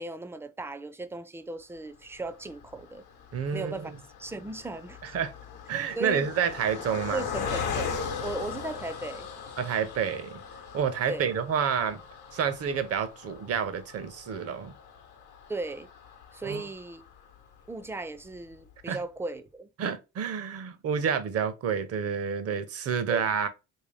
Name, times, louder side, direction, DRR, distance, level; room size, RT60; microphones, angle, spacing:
voice 1, 0.0-3.1 3.5-3.9 4.2-5.0 6.0-6.3 6.9-7.9 8.2-9.3 11.1-11.3 15.5-15.9 16.3-17.0 17.7-19.7 23.1-23.3, right 2 dB, 10° right, 0.3 m, -37 dB
Car passing by, 2.2-17.7 18.2-18.3 18.5-18.7, left 6 dB, 85° left, 0.8 m, -39 dB
voice 2, 3.3-4.0 5.0-5.3 5.7-7.2 9.6-10.4 10.7-12.0 12.3-14.7 16.4-16.7 18.9-19.0 19.8-23.5, right 7 dB, 55° right, 0.6 m, -29 dB
3.3 x 2.7 x 3.2 m
cardioid pair, 90°, 30 cm